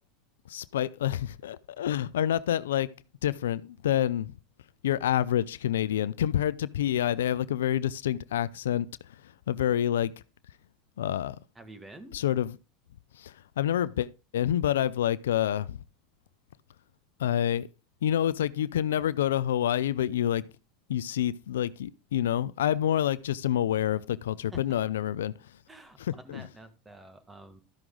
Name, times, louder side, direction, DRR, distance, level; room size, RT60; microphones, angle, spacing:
voice 1, 0.5-2.9 3.2-4.3 4.8-8.9 9.5-10.1 11.0-11.4 12.1-12.6 13.2-15.8 17.2-17.7 18.0-20.5 20.9-25.3 26.0-26.4, left 11 dB, 90° left, 0.4 m, -27 dB
voice 2, 11.6-12.2 22.9-23.1 24.5-24.6 25.7-27.6, right 2 dB, 15° right, 1.7 m, -49 dB
13.0 x 6.0 x 3.8 m
hypercardioid pair, 100°, 0 cm